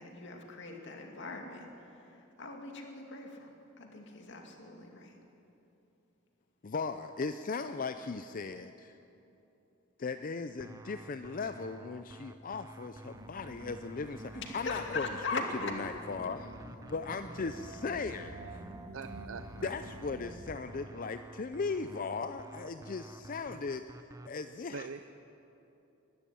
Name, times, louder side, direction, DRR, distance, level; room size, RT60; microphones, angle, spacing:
voice 1, 0.0-3.5 3.8-5.2 14.3-15.8, left 3 dB, 65° left, 2 dB, 2.4 m, -40 dB
voice 2, 6.6-9.0 10.0-15.1 15.3-15.4 15.8-16.5 16.9-18.3 19.6-23.8 24.3-24.9, left 4 dB, 45° left, 9 dB, 0.5 m, -37 dB
sound 1, 10.6-24.3, right 2 dB, 15° right, 0.7 m, -51 dB
sound 2, 13.1-20.5, right 1 dB, 60° right, 2.3 m, -49 dB
sound 3, 16.9-23.4, right 4 dB, 40° right, 2.8 m, -55 dB
voice 3, 18.9-19.7 24.7-25.1, right 5 dB, 80° right, 10 dB, 0.6 m, -43 dB
22.0 x 12.5 x 10.0 m, 2.9 s
head